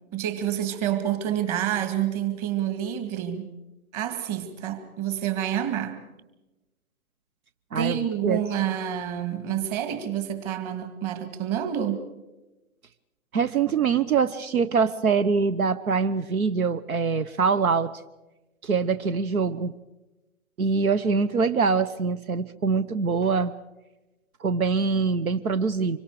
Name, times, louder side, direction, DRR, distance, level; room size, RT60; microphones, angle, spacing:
voice 1, 0.1-3.5 3.9-6.0 7.8-12.0, right 10 dB, 25° right, 2.1 m, -28 dB
voice 2, 13.3-17.9 18.6-19.7 20.6-23.5 24.4-26.0, right 5 dB, 80° right, 1.1 m, -24 dB
26.0 x 24.0 x 4.8 m
hypercardioid pair, 140°, 42 cm